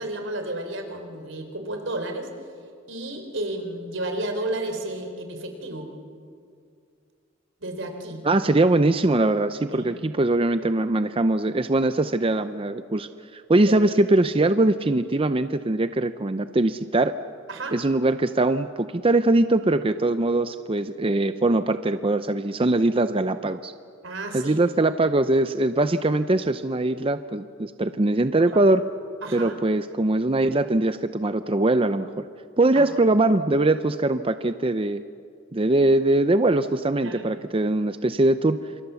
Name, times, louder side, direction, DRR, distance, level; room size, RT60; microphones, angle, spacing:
voice 1, 0.0-2.3 2.9-5.9 7.6-8.2 9.7-9.9 13.7-13.8 17.5-17.8 24.0-24.6 29.2-29.6 32.7-32.8 37.0-37.2, right 1 dB, 75° right, 5 dB, 4.1 m, -32 dB
voice 2, 8.2-17.1 17.7-23.7 24.3-28.8 29.3-32.1 32.6-35.0 35.5-38.6, right 2 dB, 30° right, 10 dB, 0.6 m, -22 dB
29.0 x 27.5 x 7.1 m, 2.3 s
head